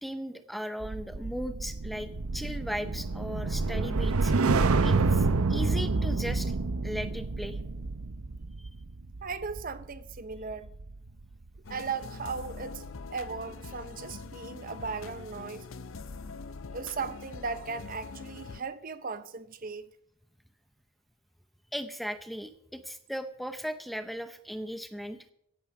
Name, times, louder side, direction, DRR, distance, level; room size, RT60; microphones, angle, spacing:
voice 1, 0.0-4.3 4.8-6.6 6.8-7.6 8.6-8.7 21.7-25.2, equal, ahead, 0.7 m, -37 dB
sound 1, 0.8-11.2 11.6-11.9, right 3 dB, 85° right, 0.8 m, -29 dB
voice 2, 9.2-10.7 11.7-12.8 13.1-15.7 16.7-19.9, right 5 dB, 40° right, 0.7 m, -37 dB
sound 2, 11.6-18.6, left 4 dB, 65° left, 0.6 m, -43 dB
16.5 x 9.0 x 5.9 m
head